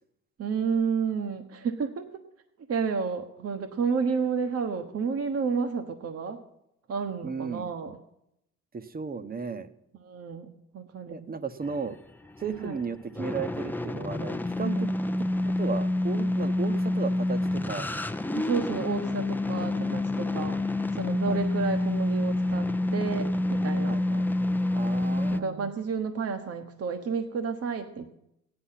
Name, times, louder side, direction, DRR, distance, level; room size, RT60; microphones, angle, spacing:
voice 1, 0.4-2.2 2.7-6.4 6.9-8.0 10.0-11.2 12.6-12.8 14.6-14.9 18.3-20.6 20.9-24.0 25.3-28.2, right 5 dB, 55° right, 7 dB, 1.2 m, -31 dB
voice 2, 7.2-7.7 8.7-9.7 11.1-12.0 12.4-14.9 15.4-17.9 19.9-20.0 21.2-21.4 23.8-24.3 24.7-25.7, right 5 dB, 30° right, 12 dB, 1.0 m, -35 dB
sound 1, 11.6-25.4, left 2 dB, 5° left, 0.6 m, -28 dB
15.5 x 10.0 x 5.8 m, 0.80 s
cardioid pair, 90°, 30 cm